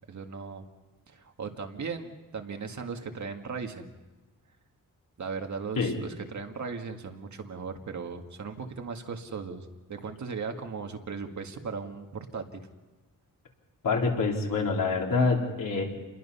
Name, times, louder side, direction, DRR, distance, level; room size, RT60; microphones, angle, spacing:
voice 1, 0.1-0.6 1.1-3.9 5.2-12.1 12.3-12.6, right 5 dB, 55° right, 4 dB, 1.9 m, -37 dB
voice 2, 13.8-15.8, left 4 dB, 75° left, 0 dB, 4.0 m, -26 dB
29.0 x 21.5 x 5.6 m, 1.2 s
wide cardioid pair, 140°, 34 cm